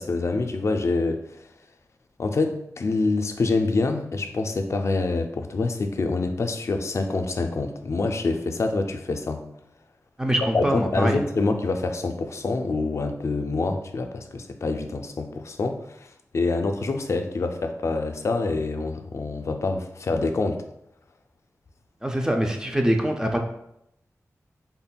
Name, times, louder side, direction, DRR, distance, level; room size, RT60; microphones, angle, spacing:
voice 1, 0.0-1.5 2.2-9.4 10.4-20.6, left 3 dB, 55° left, 7 dB, 0.4 m, -26 dB
voice 2, 10.2-11.2 22.0-23.4, right 1 dB, 10° right, 2 dB, 0.4 m, -24 dB
4.1 x 3.6 x 2.2 m, 0.79 s
wide cardioid pair, 100°, 6 cm